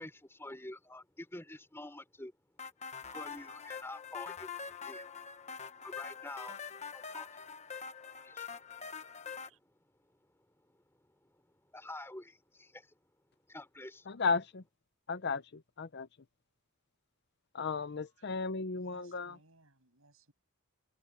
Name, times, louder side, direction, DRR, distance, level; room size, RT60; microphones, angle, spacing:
voice 1, 0.0-14.2, left 1 dB, 10° left, 3.5 m, -50 dB
sound 1, 2.6-9.5, left 6 dB, 30° left, 1.1 m, -44 dB
voice 2, 14.1-14.6 15.1-16.1 17.5-19.4, left 4 dB, 50° left, 0.6 m, -34 dB
voice 3, 18.7-20.3, right 2 dB, 70° right, 7.1 m, -65 dB
head